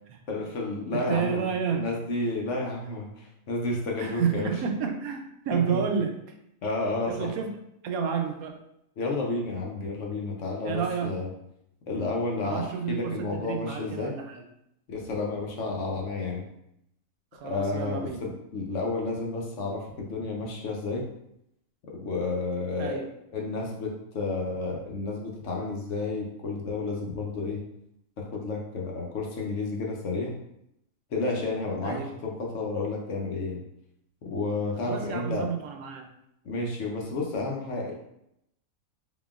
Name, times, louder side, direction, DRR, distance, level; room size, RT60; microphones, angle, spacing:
voice 1, 0.3-4.5 5.5-5.8 6.6-7.3 9.0-11.3 11.9-14.2 14.9-16.4 17.4-21.1 21.9-23.0 23.3-27.6 28.2-30.3 31.1-33.6 34.2-35.5 36.4-37.9, left 3 dB, 60° left, 0 dB, 1.0 m, -31 dB
voice 2, 0.9-1.9 4.0-6.2 7.1-7.5 7.8-8.6 10.6-11.2 12.4-14.4 17.3-18.3 22.8-23.1 31.8-32.1 34.8-36.1, right 6 dB, 80° right, 4 dB, 1.0 m, -30 dB
3.9 x 3.8 x 2.4 m, 0.79 s
omnidirectional pair, 1.5 m